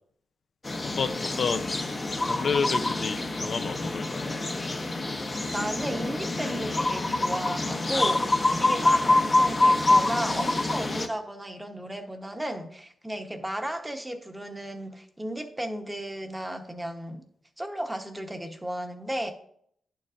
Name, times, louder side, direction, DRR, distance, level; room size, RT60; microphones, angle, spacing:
sound 1, 0.6-11.1, left 2 dB, 30° left, 0.8 m, -26 dB
voice 1, 1.0-1.8 2.2-4.2, left 5 dB, 55° left, 9 dB, 0.5 m, -30 dB
voice 2, 5.5-17.2 17.6-19.3, right 1 dB, 10° right, 5 dB, 1.0 m, -34 dB
10.5 x 6.8 x 2.5 m, 0.65 s
cardioid pair, 100°, 0 cm